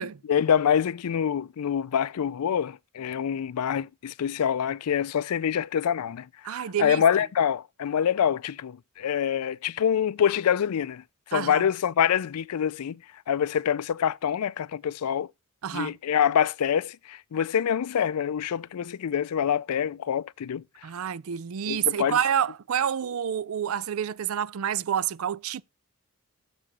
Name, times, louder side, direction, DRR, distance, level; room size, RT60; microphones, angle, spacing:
voice 1, 0.3-13.0 13.3-15.3 15.7-20.6 21.7-22.2, left 8 dB, 85° left, 0.4 m, -26 dB
voice 2, 6.4-7.0 11.3-11.7 15.6-15.9 20.8-25.6, right 9 dB, 70° right, 0.4 m, -28 dB
6.9 x 4.9 x 6.1 m
head